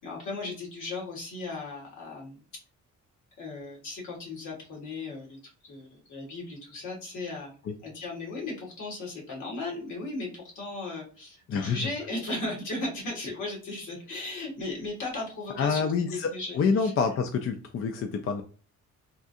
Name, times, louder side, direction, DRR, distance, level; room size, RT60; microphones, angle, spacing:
voice 1, 0.0-2.4 3.4-7.5 7.8-16.9, left 2 dB, 80° left, -2 dB, 1.7 m, -36 dB
voice 2, 15.6-18.4, left 5 dB, 50° left, 6 dB, 0.4 m, -27 dB
3.6 x 2.6 x 2.5 m, 0.36 s
cardioid pair, 120°, 30 cm